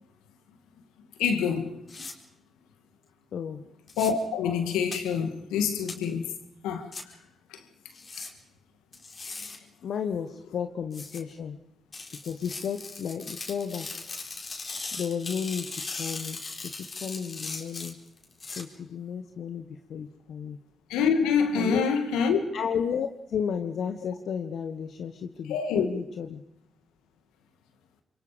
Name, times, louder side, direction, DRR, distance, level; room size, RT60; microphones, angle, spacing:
voice 1, 1.2-1.8 4.0-6.4 6.6-6.9 7.5-7.6 8.2-8.3 9.3-9.5 20.9-22.4 25.5-25.9, left 6 dB, 85° left, 2.1 m, -26 dB
sound 1, 1.9-2.1 3.9-4.1 4.9-5.0 5.9-6.0 6.9-7.0 7.9-8.3 8.9-9.6 10.9-11.2 11.9-18.6, left 3 dB, 50° left, 4.2 m, -38 dB
voice 2, 3.3-3.6 9.8-11.6 12.2-14.2 14.9-18.0 18.5-20.6 21.5-21.8 22.5-26.4, left 7 dB, 70° left, 1.2 m, -33 dB
27.0 x 23.0 x 5.1 m
hypercardioid pair, 45°, 0 cm